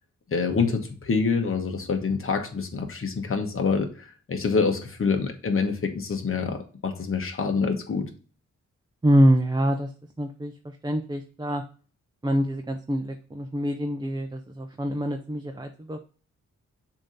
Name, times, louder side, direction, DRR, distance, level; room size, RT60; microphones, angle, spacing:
voice 1, 0.3-8.1, left 5 dB, 45° left, 4 dB, 1.2 m, -26 dB
voice 2, 9.0-9.9 10.2-11.6 12.2-16.0, equal, 15° right, 4 dB, 0.6 m, -25 dB
7.0 x 2.9 x 5.2 m, 0.39 s
wide cardioid pair, 115°, 30 cm